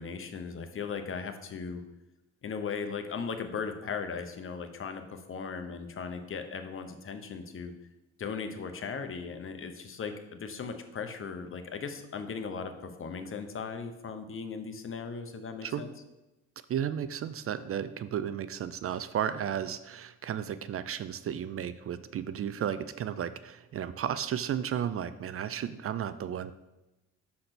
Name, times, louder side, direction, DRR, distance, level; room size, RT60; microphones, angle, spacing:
voice 1, 0.0-1.8 2.4-7.7 8.2-15.9, left 5 dB, 45° left, 7 dB, 0.9 m, -38 dB
voice 2, 16.7-26.5, right 9 dB, 50° right, 14 dB, 0.4 m, -33 dB
6.5 x 4.2 x 5.9 m, 0.98 s
cardioid pair, 90°, 30 cm